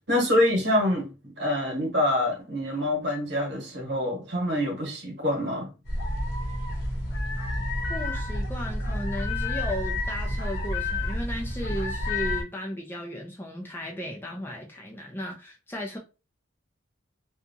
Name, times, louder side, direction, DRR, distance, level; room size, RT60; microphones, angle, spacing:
voice 1, 0.1-1.1 1.4-5.7, left 1 dB, 55° right, 1.1 m, -25 dB
sound 1, 5.8-12.4, left 1 dB, 55° left, 0.8 m, -29 dB
voice 2, 7.9-16.0, equal, 10° left, 0.4 m, -35 dB
2.7 x 2.3 x 2.6 m
head